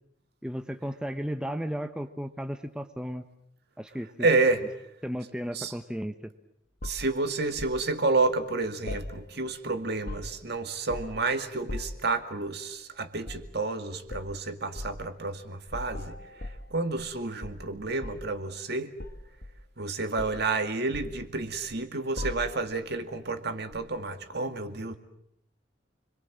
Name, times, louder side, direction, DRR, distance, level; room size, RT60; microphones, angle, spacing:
voice 1, 0.4-3.2 3.8-4.3 5.0-6.1, equal, 5° right, 7 dB, 0.9 m, -34 dB
voice 2, 4.2-4.6 5.5-5.7 6.8-16.2 16.7-18.9 19.8-24.9, right 3 dB, 60° right, 7 dB, 2.2 m, -30 dB
sound 1, 6.8-7.8 8.9-9.6 9.9-10.5 10.9-11.3 11.7-12.1 13.2-13.5 14.1-14.3 14.8-15.0 15.7-17.1 17.4-18.4 19.0-19.9 20.2-20.5 20.9-21.7 22.2-22.8 23.7-23.9, left 1 dB, 55° left, 1.8 m, -39 dB
29.5 x 22.5 x 7.4 m, 0.76 s
head